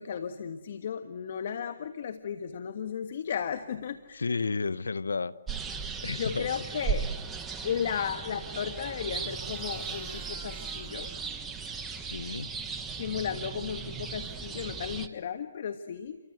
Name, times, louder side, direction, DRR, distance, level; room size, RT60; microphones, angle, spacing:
voice 1, 0.0-4.4 6.1-7.1 7.6-11.1 13.0-16.2, left 8 dB, 50° left, 9 dB, 1.5 m, -35 dB
voice 2, 4.1-5.3 6.0-6.5 12.0-12.5, left 4 dB, 85° left, 17 dB, 1.0 m, -32 dB
sound 1, 5.5-15.1, right 5 dB, 10° right, 1.3 m, -37 dB
sound 2, 7.7-12.2, right 7 dB, 25° right, 2.1 m, -53 dB
29.5 x 24.5 x 7.9 m, 1.1 s
hypercardioid pair, 150°, 0 cm